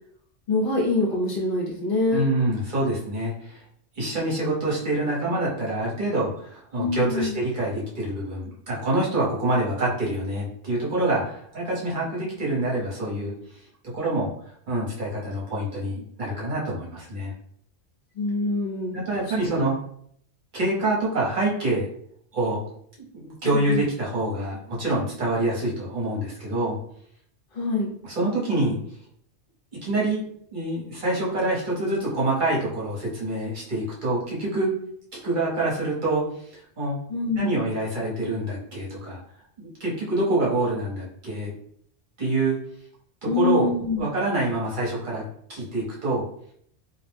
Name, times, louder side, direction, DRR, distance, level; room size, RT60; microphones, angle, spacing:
voice 1, 0.5-2.2 6.8-7.4 18.1-19.6 23.4-23.9 27.5-27.9 37.1-37.6 43.3-44.1, left 2 dB, 55° left, -4 dB, 0.9 m, -25 dB
voice 2, 2.1-3.6 4.0-13.3 13.9-14.3 14.7-17.3 18.9-19.8 20.5-21.9 22.3-22.6 23.0-26.8 28.0-28.8 29.8-30.2 30.5-34.7 35.2-36.2 36.5-37.0 37.4-39.2 39.6-41.5 42.2-42.6 43.3-43.7 44.0-45.2 45.5-46.2, right 2 dB, 45° right, -5 dB, 1.0 m, -26 dB
2.4 x 2.0 x 3.2 m, 0.67 s
omnidirectional pair, 1.2 m